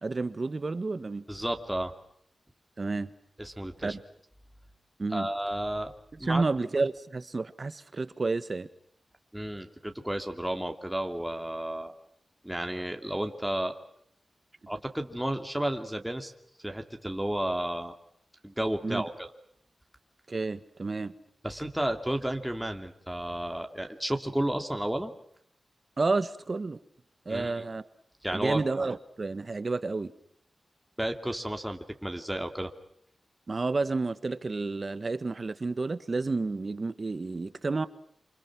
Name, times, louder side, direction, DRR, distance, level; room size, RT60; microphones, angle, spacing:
voice 1, 0.0-1.2 2.8-3.1 3.8-4.0 5.0-5.3 6.1-8.7 18.8-19.0 20.3-21.1 26.0-26.8 27.2-27.9 28.3-30.1 33.5-37.9, right 3 dB, 45° right, 12 dB, 1.6 m, -30 dB
voice 2, 1.3-1.9 3.4-4.0 5.1-5.9 6.2-6.5 9.3-11.9 12.4-13.7 14.7-16.3 16.6-17.9 18.4-19.3 21.4-25.1 27.3-27.6 28.2-28.6 31.0-32.7, right 1 dB, 5° right, 4 dB, 2.7 m, -32 dB
28.0 x 27.0 x 6.2 m, 0.67 s
wide cardioid pair, 85°, 0 cm